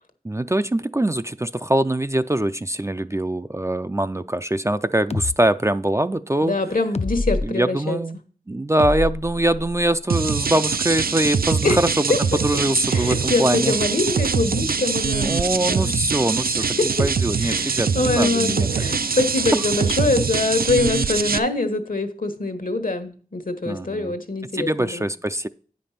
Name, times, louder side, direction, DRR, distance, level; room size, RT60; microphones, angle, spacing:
voice 1, 0.2-6.6 7.4-8.2 8.5-12.1 12.4-13.7 15.2-16.7 17.0-18.7 23.7-24.2 24.5-25.5, right 1 dB, 20° right, 11 dB, 0.4 m, -23 dB
sound 1, 5.1-5.4 6.9-7.5 8.8-9.9, left 3 dB, 45° left, 0.5 m, -26 dB
voice 2, 6.4-8.0 11.6-11.8 12.1-12.2 12.9-15.3 15.7-15.9 16.8-16.9 17.4-25.1, left 3 dB, 70° left, 8 dB, 1.2 m, -24 dB
sound 2, 10.1-21.4, right 5 dB, 85° right, 0.4 m, -23 dB
9.2 x 5.2 x 5.7 m, 0.42 s
wide cardioid pair, 50°, 15 cm